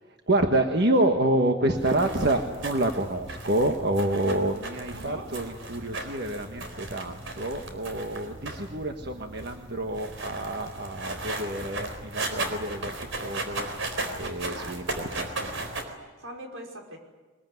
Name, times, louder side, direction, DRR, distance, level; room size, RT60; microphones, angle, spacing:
voice 1, 0.3-14.8 15.2-15.5, right 1 dB, 55° right, 4 dB, 1.5 m, -28 dB
sound 1, 1.7-15.8, right 2 dB, 70° right, 4.2 m, -36 dB
voice 2, 4.9-5.3 14.5-15.1 16.2-17.0, right 1 dB, 90° right, 2 dB, 5.5 m, -41 dB
23.0 x 22.0 x 9.5 m, 1.3 s
head